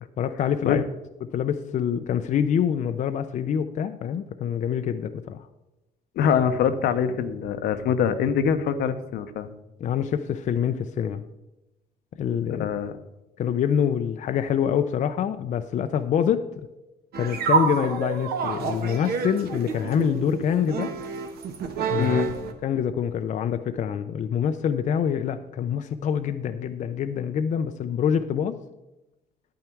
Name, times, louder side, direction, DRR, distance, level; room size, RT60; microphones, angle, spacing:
voice 1, 0.2-0.8 1.2-5.4 9.8-11.2 12.2-12.7 13.4-16.4 17.1-20.9 21.9-22.2 22.6-28.6, left 8 dB, 45° left, 8 dB, 0.5 m, -25 dB
voice 2, 6.2-9.5 12.6-13.0 22.0-22.3, left 7 dB, 70° left, 10 dB, 0.9 m, -24 dB
sound 1, 17.1-22.5, right 5 dB, 65° right, 1.3 m, -28 dB
9.6 x 9.1 x 4.5 m, 0.98 s
cardioid pair, 110°, 17 cm